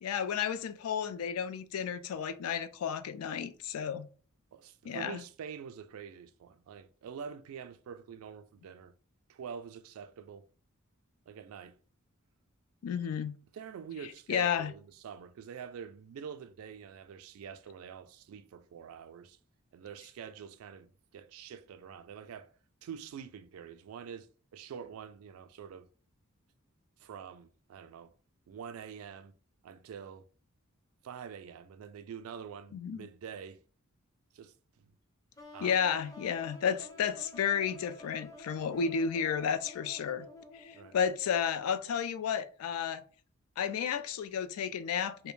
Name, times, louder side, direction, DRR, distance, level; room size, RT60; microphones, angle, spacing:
voice 1, 0.0-4.1 4.8-5.2 12.8-13.4 14.3-14.7 32.7-33.1 35.6-40.3 40.5-43.0 43.6-45.3, left 7 dB, 90° left, 0.3 m, -32 dB
voice 2, 4.5-8.9 9.3-10.5 11.3-11.8 13.5-19.4 19.7-22.5 22.8-25.9 27.0-28.1 28.5-29.3 29.6-30.2 31.0-33.6 34.3-34.9 35.5-35.8 40.7-41.0, right 7 dB, 75° right, 0.3 m, -46 dB
sound 1, 35.4-41.2, left 2 dB, 15° left, 0.4 m, -51 dB
2.3 x 2.1 x 3.0 m
head